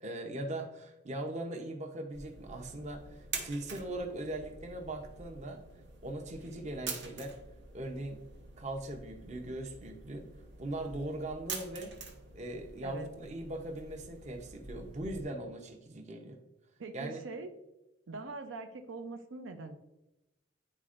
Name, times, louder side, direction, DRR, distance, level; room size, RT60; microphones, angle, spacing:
voice 1, 0.0-5.6 6.0-7.3 7.7-8.2 8.6-10.2 10.6-11.9 12.3-16.4 16.9-17.2, right 1 dB, 40° right, 3 dB, 0.7 m, -40 dB
sound 1, 2.1-15.2, right 4 dB, 65° right, 0.9 m, -46 dB
voice 2, 16.8-17.5 18.1-19.8, right 3 dB, 90° right, 7 dB, 0.5 m, -42 dB
10.0 x 4.2 x 2.5 m, 0.94 s
head